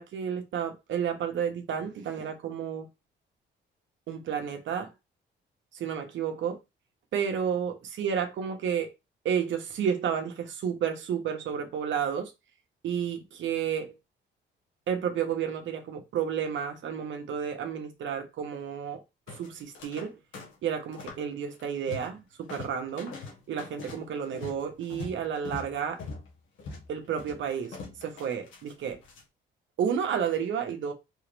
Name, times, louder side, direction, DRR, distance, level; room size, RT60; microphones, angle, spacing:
voice 1, 0.0-2.9 4.1-4.9 5.7-6.6 7.1-8.9 9.2-12.3 12.8-13.9 14.9-19.0 19.4-20.2 20.6-23.1 23.5-26.0 26.9-29.0 29.8-30.9, right 8 dB, 70° right, 1.1 m, -31 dB
sound 1, 19.3-20.1 20.3-21.2 21.5-22.2 22.5-29.2, left 3 dB, 80° left, 1.7 m, -43 dB
4.7 x 3.0 x 3.3 m
cardioid pair, 90°, 20 cm